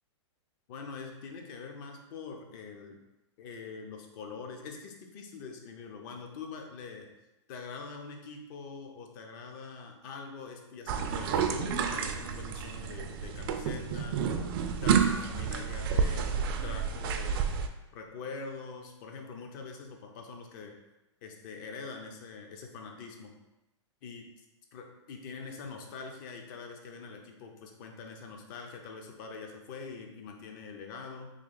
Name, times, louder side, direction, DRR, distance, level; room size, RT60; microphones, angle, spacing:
voice 1, 0.7-3.0 3.4-7.1 7.5-14.2 14.8-17.6 17.9-20.7 21.2-23.3 24.0-24.4 24.7-31.3, left 4 dB, 45° left, 3 dB, 0.6 m, -44 dB
sound 1, 10.9-17.7, right 6 dB, 50° right, 0.4 m, -30 dB
3.2 x 2.4 x 3.8 m, 0.97 s
hypercardioid pair, 125°, 15 cm